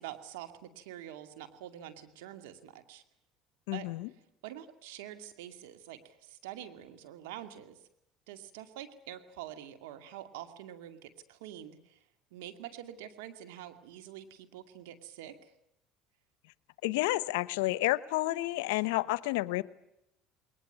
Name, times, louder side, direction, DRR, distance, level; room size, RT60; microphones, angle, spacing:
voice 1, 0.0-3.0 3.7-3.9 4.4-7.8 8.3-12.0 12.3-15.5, right 11 dB, 90° right, 9 dB, 2.3 m, -46 dB
voice 2, 3.7-4.1 16.8-19.6, left 19 dB, 90° left, 18 dB, 0.8 m, -30 dB
21.5 x 20.0 x 9.6 m, 0.83 s
supercardioid pair, 90°, 0 cm